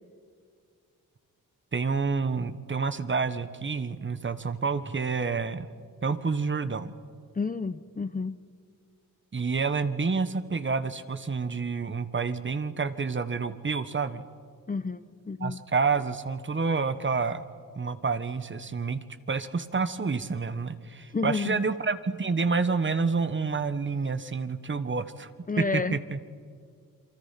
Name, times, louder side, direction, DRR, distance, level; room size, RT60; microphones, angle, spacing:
voice 1, 1.7-5.7 6.0-6.9 9.3-14.2 15.4-17.4 17.7-25.3 25.6-26.2, right 4 dB, 35° right, 12 dB, 1.3 m, -28 dB
voice 2, 7.4-8.4 14.7-15.6 21.1-21.6 25.5-26.0, left 4 dB, 25° left, 12 dB, 0.8 m, -30 dB
28.0 x 25.0 x 5.9 m, 2.1 s
cardioid pair, 95°, 34 cm